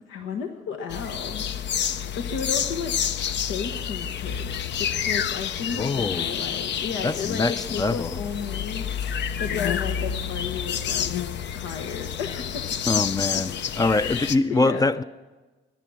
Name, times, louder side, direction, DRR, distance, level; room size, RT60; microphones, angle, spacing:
voice 1, 0.0-3.0 3.3-11.1 11.5-13.1 13.3-13.4 13.9-14.9, left 6 dB, 90° left, 1.1 m, -34 dB
sound 1, 0.9-14.4, left 8 dB, 65° left, 0.7 m, -29 dB
voice 2, 5.8-6.3 7.0-8.1 12.9-15.0, left 3 dB, 20° left, 0.4 m, -24 dB
21.5 x 10.0 x 6.2 m
cardioid pair, 90°, 20 cm